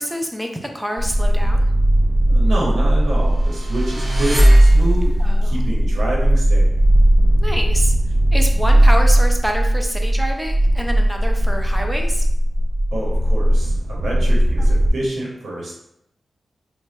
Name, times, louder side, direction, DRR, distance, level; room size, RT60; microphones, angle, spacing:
voice 1, 0.0-1.6 5.2-5.6 7.4-7.9 8.3-12.3 14.6-14.7, equal, 5° right, 2 dB, 0.6 m, -27 dB
sound 1, 1.0-14.9, right 1 dB, 65° right, 0.5 m, -17 dB
voice 2, 2.3-5.1 5.4-6.7 12.9-15.7, right 1 dB, 80° right, -4 dB, 1.0 m, -27 dB
sound 2, 3.5-5.3, right 1 dB, 40° right, 1.5 m, -15 dB
3.1 x 2.3 x 4.2 m, 0.78 s
wide cardioid pair, 85°, 0 cm